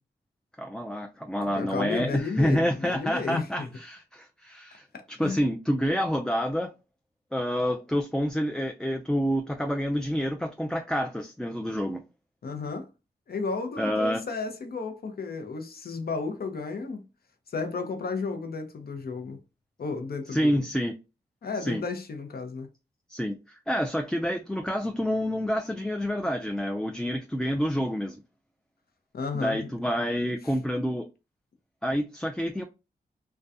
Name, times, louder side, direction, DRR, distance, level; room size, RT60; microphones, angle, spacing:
voice 1, 0.6-6.7 7.3-12.0 13.8-14.2 20.3-20.9 21.6-21.8 23.1-28.2 29.3-31.1 31.8-32.6, equal, 5° left, 0.3 m, -28 dB
voice 2, 1.4-3.7 4.9-5.5 12.4-12.9 13.3-17.0 17.5-19.4 19.8-20.7 21.4-22.7 29.1-29.7 30.4-30.5, left 4 dB, 60° left, 0.7 m, -33 dB
2.3 x 2.2 x 2.6 m
cardioid pair, 45°, 18 cm